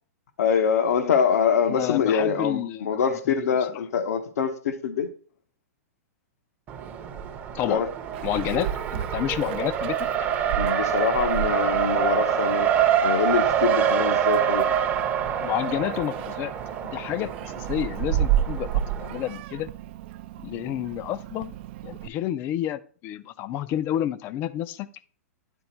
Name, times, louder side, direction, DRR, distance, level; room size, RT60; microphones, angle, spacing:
voice 1, 0.4-5.1 7.7-7.9 10.5-12.7 13.0-14.6, left 7 dB, 80° left, 1.0 m, -24 dB
voice 2, 1.7-3.4 3.7-3.8 7.5-7.8 8.2-10.0 15.4-16.5 16.9-19.7 20.4-21.6 21.8-24.9, left 12 dB, 25° left, 0.4 m, -30 dB
Race car auto racing, 6.7-19.3, right 8 dB, 20° right, 0.7 m, -26 dB
Meow, 8.1-22.1, right 11 dB, 45° right, 0.3 m, -33 dB
9.8 x 4.0 x 4.4 m
hypercardioid pair, 155°, 8 cm